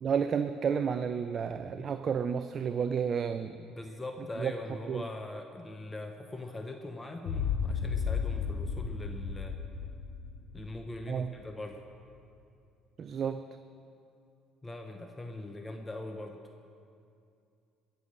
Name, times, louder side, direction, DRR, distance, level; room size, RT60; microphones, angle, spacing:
voice 1, 0.0-3.7 4.4-4.5 4.9-5.0 11.1-11.3 13.0-13.5, right 7 dB, 45° right, 9 dB, 0.4 m, -31 dB
voice 2, 3.7-9.6 10.5-11.8 14.6-16.4, left 2 dB, 20° left, 5 dB, 0.9 m, -41 dB
sound 1, 7.3-11.6, left 6 dB, 75° left, 1.8 m, -34 dB
17.5 x 6.9 x 6.6 m, 2.5 s
supercardioid pair, 85°, 0 cm